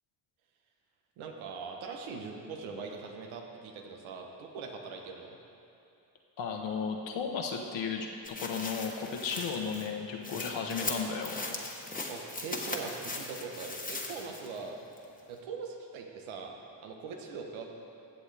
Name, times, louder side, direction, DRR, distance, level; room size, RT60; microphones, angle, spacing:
voice 1, 1.2-5.4 12.1-14.8 15.3-17.7, right 4 dB, 85° right, 2 dB, 1.3 m, -41 dB
voice 2, 6.4-8.1 8.4-11.4, left 5 dB, 70° left, 2 dB, 1.2 m, -34 dB
sound 1, 8.2-14.6 15.0-15.1, left 2 dB, 20° left, 1.3 m, -39 dB
16.0 x 6.9 x 3.5 m, 2.8 s
supercardioid pair, 70°, 47 cm